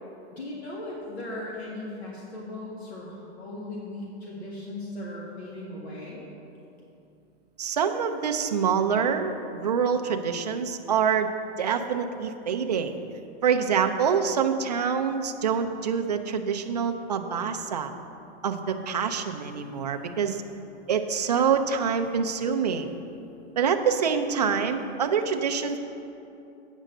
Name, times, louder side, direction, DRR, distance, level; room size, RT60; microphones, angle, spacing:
voice 1, 0.3-6.2, left 1 dB, 65° left, -4 dB, 1.9 m, -37 dB
voice 2, 7.6-11.3 11.6-13.0 13.4-17.9 18.4-20.4 20.9-22.9 23.6-25.8, right 6 dB, 40° right, 5 dB, 0.5 m, -26 dB
9.0 x 6.2 x 6.5 m, 2.8 s
hypercardioid pair, 180°, 33 cm